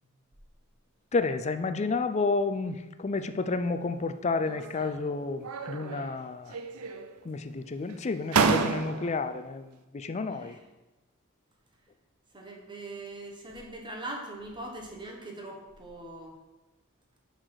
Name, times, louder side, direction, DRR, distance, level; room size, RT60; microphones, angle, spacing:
voice 1, 1.1-6.6 7.2-9.6 9.9-10.5, left 3 dB, 30° left, 10 dB, 0.4 m, -30 dB
sound 1, 4.5-5.1 5.4-6.2 6.5-7.3 7.9-8.0 8.3-9.3, right 5 dB, 85° right, 0.5 m, -29 dB
voice 2, 10.3-10.6 12.3-16.3, right 2 dB, 20° right, 0 dB, 1.4 m, -41 dB
10.0 x 4.0 x 4.9 m, 1.1 s
head